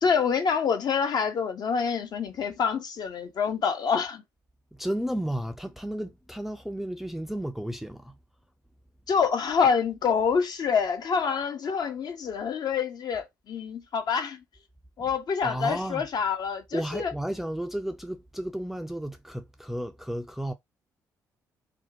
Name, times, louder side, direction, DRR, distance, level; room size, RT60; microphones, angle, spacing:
voice 1, 0.0-4.2 9.1-14.4 15.0-17.1, left 6 dB, 45° left, 0.6 m, -26 dB
voice 2, 4.8-8.1 15.4-16.1 16.7-20.5, right 1 dB, ahead, 0.3 m, -33 dB
2.6 x 2.1 x 2.5 m
figure-of-eight pair, 45°, 9 cm